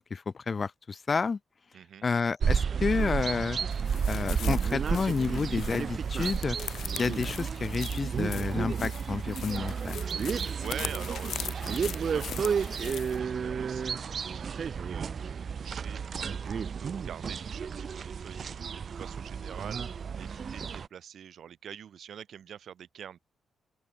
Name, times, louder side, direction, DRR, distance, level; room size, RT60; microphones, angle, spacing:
voice 1, 0.0-1.4 2.0-3.6 4.0-6.6 7.0-10.0, left 5 dB, 40° left, 1.2 m, -30 dB
voice 2, 1.7-2.0 10.5-16.3 16.6-23.2, right 9 dB, 70° right, 4.4 m, -45 dB
sound 1, 2.4-20.9, right 6 dB, 55° right, 1.8 m, -32 dB
sound 2, 3.7-13.2, left 9 dB, 75° left, 2.6 m, -42 dB
open air
cardioid pair, 85°, 0 cm